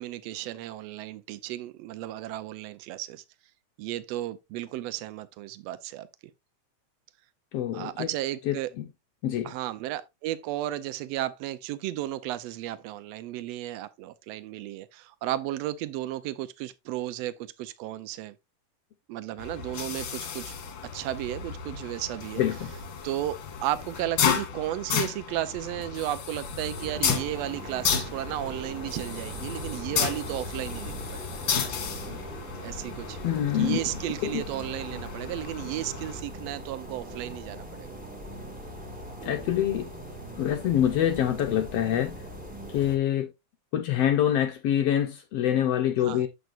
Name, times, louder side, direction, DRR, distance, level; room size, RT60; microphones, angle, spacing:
voice 1, 0.0-3.2 3.8-6.1 7.7-8.7 9.4-18.4 19.1-20.5 20.9-22.4 23.0-31.3 32.6-33.2 33.5-38.0 46.0-46.2, right 14 dB, 85° right, 1.5 m, -34 dB
voice 2, 7.5-8.1 8.5-8.8 9.2-9.5 22.4-22.7 33.2-33.8 34.2-34.4 39.2-39.9 40.4-42.2 42.7-43.3 43.7-46.3, left 10 dB, 80° left, 1.4 m, -25 dB
sound 1, 19.4-36.2, left 7 dB, 55° left, 1.8 m, -33 dB
sound 2, 26.7-43.0, equal, 5° right, 1.1 m, -41 dB
8.1 x 7.7 x 2.5 m
omnidirectional pair, 3.6 m